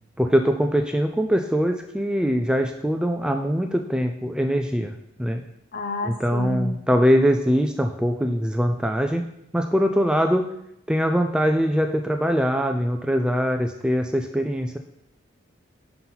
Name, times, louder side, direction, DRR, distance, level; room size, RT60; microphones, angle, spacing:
voice 1, 0.2-5.4 6.0-9.2 9.5-10.4 10.9-14.8, equal, 5° right, 5 dB, 0.3 m, -22 dB
voice 2, 5.7-6.7, left 1 dB, 50° left, 7 dB, 0.6 m, -30 dB
5.8 x 5.7 x 3.9 m, 0.77 s
head